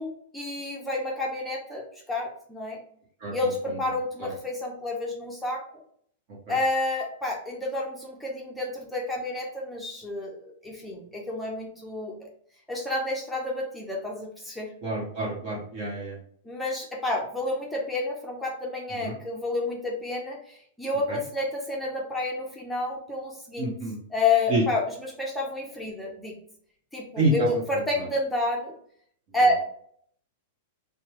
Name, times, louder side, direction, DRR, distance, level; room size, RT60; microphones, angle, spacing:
voice 1, 0.0-1.8 2.1-2.8 3.3-5.8 6.5-12.3 12.7-14.7 16.5-23.7 24.1-26.4 26.9-28.7 29.3-29.6, left 2 dB, 5° left, -2 dB, 0.5 m, -29 dB
voice 2, 14.8-16.2 19.0-19.1 21.1-21.2 23.6-23.9 24.5-24.6 27.2-27.5, right 1 dB, 45° right, -5 dB, 1.1 m, -27 dB
3.2 x 2.1 x 3.0 m, 0.62 s
supercardioid pair, 145°, 0 cm